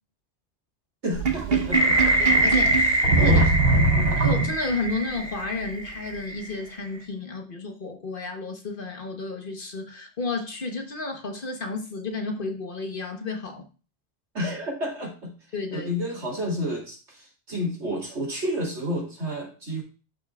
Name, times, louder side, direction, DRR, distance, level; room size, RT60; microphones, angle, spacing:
voice 1, 1.0-2.2 2.7-3.5 3.9-4.2 14.3-15.3 15.7-19.8, equal, 75° right, 3.2 m, -31 dB
Sink (filling or washing), 1.1-4.9, right 3 dB, 55° right, 1.3 m, -22 dB
sound 1, 1.7-6.6, right 1 dB, 15° right, 1.1 m, -24 dB
voice 2, 2.2-2.9 3.2-3.5 4.1-13.6 15.5-15.9, left 3 dB, 50° left, 1.3 m, -32 dB
11.0 x 5.7 x 2.4 m
omnidirectional pair, 1.2 m